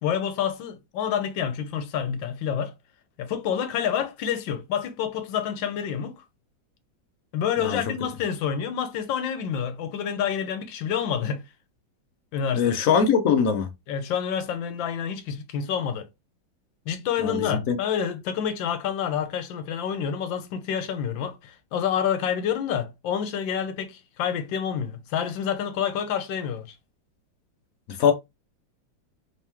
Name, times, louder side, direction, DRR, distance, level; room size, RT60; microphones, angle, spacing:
voice 1, 0.0-2.7 3.2-6.2 7.3-11.4 12.3-12.6 13.9-16.1 16.9-26.8, left 8 dB, 80° left, 1.4 m, -28 dB
voice 2, 12.5-13.7 17.2-17.8 28.0-28.1, left 7 dB, 65° left, 0.9 m, -21 dB
3.6 x 3.0 x 3.3 m
omnidirectional pair, 2.1 m